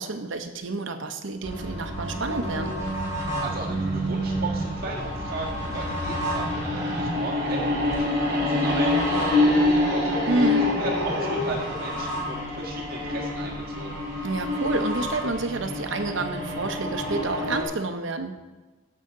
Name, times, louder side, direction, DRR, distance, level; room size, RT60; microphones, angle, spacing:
voice 1, 0.0-2.8 10.3-10.7 14.2-18.4, right 3 dB, 70° right, 7 dB, 0.8 m, -29 dB
sound 1, 1.4-17.6, left 1 dB, 15° right, 2.7 m, -27 dB
voice 2, 3.4-10.2 10.6-14.0, right 2 dB, 45° right, -1 dB, 1.8 m, -36 dB
14.5 x 5.7 x 3.8 m, 1.2 s
head